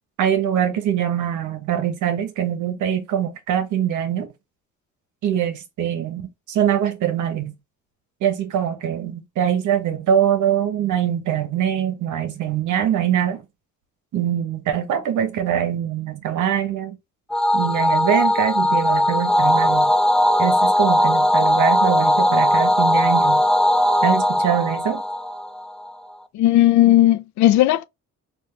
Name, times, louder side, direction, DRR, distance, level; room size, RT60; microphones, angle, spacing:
voice 1, 0.2-4.3 5.2-7.5 8.2-13.4 14.1-17.0 17.5-19.9 20.4-23.4 24.0-25.0, right 9 dB, 80° right, 0.9 m, -23 dB
sound 1, 17.3-25.9, left 1 dB, ahead, 0.4 m, -18 dB
voice 2, 26.3-27.9, left 14 dB, 70° left, 0.4 m, -15 dB
3.6 x 2.5 x 3.2 m
cardioid pair, 90°, 30 cm